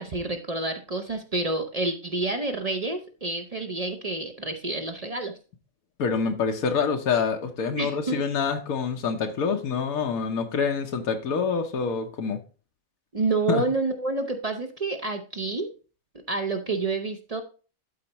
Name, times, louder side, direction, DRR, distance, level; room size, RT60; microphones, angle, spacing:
voice 1, 0.0-5.3 7.8-8.2 13.1-15.7 16.3-17.4, right 3 dB, 40° right, 6 dB, 0.6 m, -28 dB
voice 2, 6.0-12.4 13.5-13.6, left 6 dB, 90° left, 4 dB, 1.3 m, -26 dB
12.5 x 4.3 x 2.9 m, 0.36 s
omnidirectional pair, 1.4 m